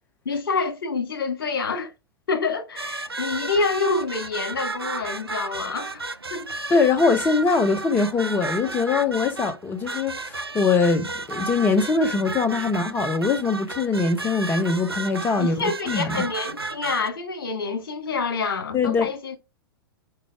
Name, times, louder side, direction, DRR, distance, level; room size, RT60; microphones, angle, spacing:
voice 1, 0.3-1.9 2.3-6.0 6.3-6.5 15.4-19.4, left 4 dB, 60° left, 2.2 m, -27 dB
sound 1, 2.8-17.1, right 3 dB, 85° right, 0.5 m, -33 dB
voice 2, 6.7-15.6 15.9-16.2 18.7-19.1, left 4 dB, 15° left, 0.6 m, -22 dB
5.0 x 4.6 x 4.6 m
figure-of-eight pair, 100°, 13 cm